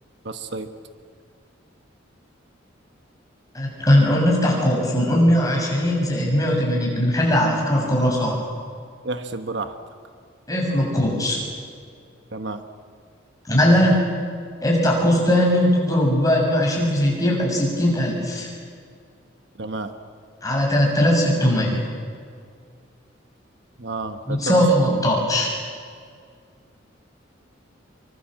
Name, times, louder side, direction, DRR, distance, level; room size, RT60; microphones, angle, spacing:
voice 1, 0.2-0.7 7.8-8.0 9.0-9.8 12.3-12.6 19.6-19.9 23.8-25.0, right 3 dB, 60° right, 8 dB, 1.2 m, -31 dB
voice 2, 3.5-8.4 10.5-11.4 13.5-14.1 14.6-18.5 20.4-21.9 24.3-25.5, equal, 20° left, -1 dB, 6.8 m, -19 dB
26.5 x 24.5 x 7.6 m, 2.1 s
head